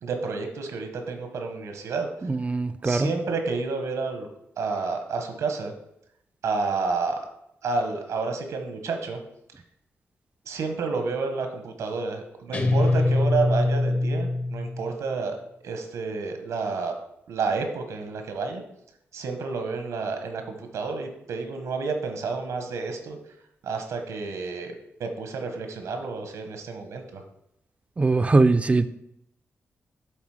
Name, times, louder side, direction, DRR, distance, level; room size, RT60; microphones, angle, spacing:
voice 1, 0.0-2.1 2.8-4.3 4.6-5.7 6.4-7.2 7.6-9.2 10.4-15.4 15.6-16.9 17.3-18.6 19.1-23.2 23.6-24.7 25.0-27.2, right 4 dB, 85° right, 5 dB, 1.1 m, -30 dB
voice 2, 2.2-3.1 28.0-28.9, right 3 dB, 25° right, 12 dB, 0.4 m, -21 dB
Guitar, 12.5-15.1, left 2 dB, 35° left, 0.8 m, -23 dB
8.1 x 3.7 x 4.9 m, 0.80 s
cardioid pair, 100°, 5 cm